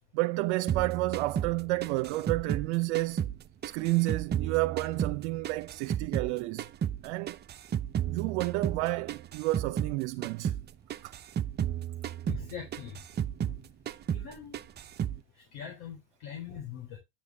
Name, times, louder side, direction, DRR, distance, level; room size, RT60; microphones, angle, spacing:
voice 1, 0.1-3.2 3.6-6.6 7.0-7.4 8.1-10.5 11.0-11.1, right 20 dB, 70° right, 0.7 m, -30 dB
sound 1, 0.7-3.4 3.6-6.3 6.6-10.0 10.2-10.6 10.9-13.6 13.9-14.3 14.5-15.2, right 9 dB, 30° right, 0.7 m, -33 dB
voice 2, 12.2-13.0 14.1-14.6 15.4-17.0, left 8 dB, 65° left, 3.8 m, -42 dB
10.0 x 7.1 x 3.4 m
supercardioid pair, 105°, 34 cm